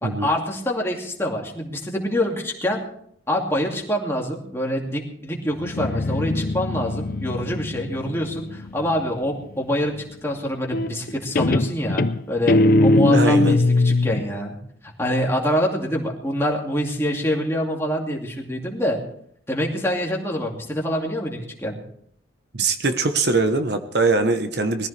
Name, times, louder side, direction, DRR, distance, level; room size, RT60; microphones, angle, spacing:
voice 1, 0.0-2.8 3.3-9.9 10.2-14.6 14.8-19.0 19.5-21.8, equal, 15° left, -1 dB, 2.4 m, -25 dB
Guitar, 5.6-9.2 10.7-11.1 11.4-14.3, left 2 dB, 50° left, 0.5 m, -21 dB
voice 2, 13.1-13.6 22.5-24.9, right 3 dB, 55° right, 8 dB, 1.0 m, -21 dB
21.5 x 14.5 x 3.4 m, 0.67 s
head